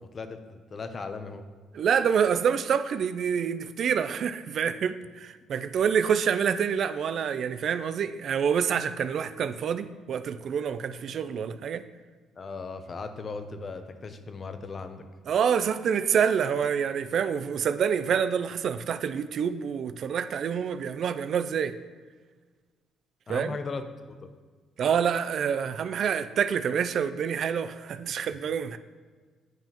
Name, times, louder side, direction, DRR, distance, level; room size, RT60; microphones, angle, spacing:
voice 1, 0.0-1.4 12.4-15.0 23.3-24.3, left 4 dB, 35° left, 9 dB, 0.6 m, -37 dB
voice 2, 1.7-11.8 15.3-21.7 23.3-23.6 24.8-28.8, right 7 dB, 55° right, 11 dB, 0.3 m, -27 dB
9.0 x 5.5 x 3.0 m, 1.5 s
cardioid pair, 100°, 0 cm